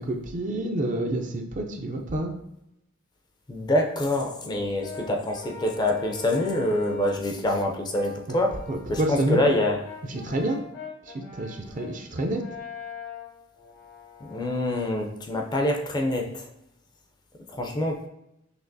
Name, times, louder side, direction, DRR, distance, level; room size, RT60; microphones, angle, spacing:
voice 1, 0.0-2.3 8.7-9.4 10.1-10.6 11.1-12.4, right 1 dB, 40° right, 4 dB, 0.4 m, -28 dB
voice 2, 3.5-8.5 8.9-9.8 14.3-16.5 17.5-18.0, left 1 dB, 20° left, 2 dB, 0.4 m, -25 dB
Brass instrument, 4.8-7.3 7.9-14.9, left 4 dB, 85° left, 1.3 m, -42 dB
5.8 x 2.8 x 2.6 m, 0.83 s
head